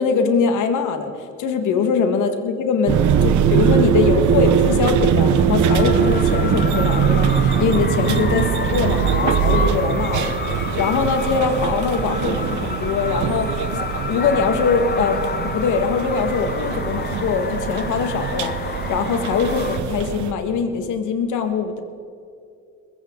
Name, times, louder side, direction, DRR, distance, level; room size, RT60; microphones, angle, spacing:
voice 1, 0.0-13.6 14.0-21.8, left 5 dB, 80° left, 6 dB, 1.9 m, -22 dB
sound 1, 2.9-20.3, right 7 dB, 75° right, 1.0 m, -21 dB
sound 2, 5.7-19.8, left 5 dB, 35° left, 1.1 m, -29 dB
21.0 x 15.5 x 3.9 m, 2.5 s
cardioid pair, 90°, 30 cm